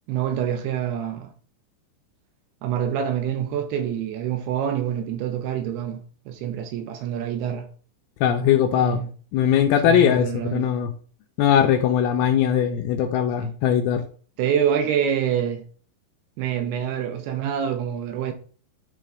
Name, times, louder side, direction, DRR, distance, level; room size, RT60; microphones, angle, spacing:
voice 1, 0.1-1.3 2.6-7.7 8.7-9.1 9.8-10.7 13.4-13.5 14.4-15.6 16.4-18.3, right 9 dB, 75° right, 2.7 m, -26 dB
voice 2, 8.2-9.0 9.3-10.9 11.4-14.0, left 9 dB, 80° left, 2.4 m, -20 dB
9.8 x 3.8 x 3.5 m
omnidirectional pair, 4.9 m